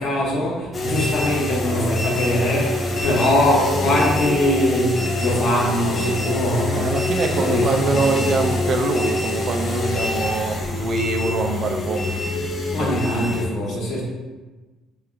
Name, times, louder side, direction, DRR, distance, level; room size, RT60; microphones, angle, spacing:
voice 1, 0.0-6.9 7.3-8.2 12.7-14.0, left 1 dB, 65° left, -3 dB, 1.0 m, -22 dB
sound 1, 0.7-13.5, left 2 dB, 35° left, 0.7 m, -25 dB
voice 2, 6.7-12.1 12.8-12.9 13.6-13.8, right 4 dB, 55° right, 4 dB, 0.5 m, -24 dB
3.4 x 2.3 x 3.7 m, 1.2 s
supercardioid pair, 65°, 0 cm